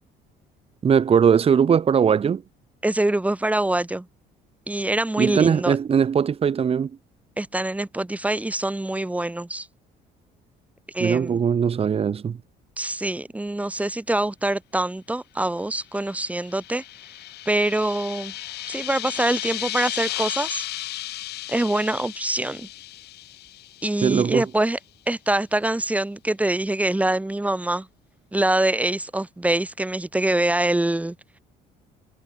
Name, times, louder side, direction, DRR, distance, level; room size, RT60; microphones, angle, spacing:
voice 1, 0.8-2.4 5.2-6.9 11.0-12.4 24.0-24.4, right 7 dB, 35° right, 1.2 m, -20 dB
voice 2, 2.8-4.1 4.7-5.8 7.4-9.7 10.9-11.4 12.8-16.8 17.4-18.3 18.7-20.6 21.5-22.7 23.8-24.8 25.1-27.9 28.3-31.1, right 1 dB, 10° right, 1.6 m, -24 dB
sound 1, 16.0-24.3, left 15 dB, 75° left, 4.3 m, -34 dB
cardioid pair, 110°, 17 cm